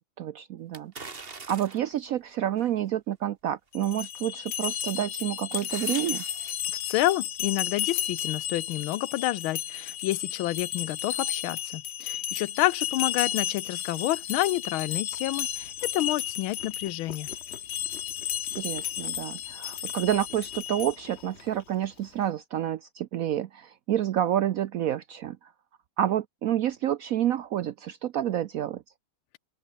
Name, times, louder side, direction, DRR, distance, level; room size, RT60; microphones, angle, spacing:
voice 1, 0.2-6.2 18.5-25.5 26.0-28.8, right 11 dB, 85° right, 0.7 m, -29 dB
sound 1, 0.7-2.0 2.6-2.7 4.3-4.6 5.0-6.6 6.9-7.0, right 4 dB, 30° right, 1.9 m, -42 dB
sound 2, 3.7-21.2, left 11 dB, 60° left, 1.5 m, -33 dB
voice 2, 6.8-17.3, left 16 dB, 85° left, 1.5 m, -29 dB
Chewing mastication, 15.1-22.3, left 6 dB, 40° left, 1.3 m, -50 dB
open air
omnidirectional pair, 2.2 m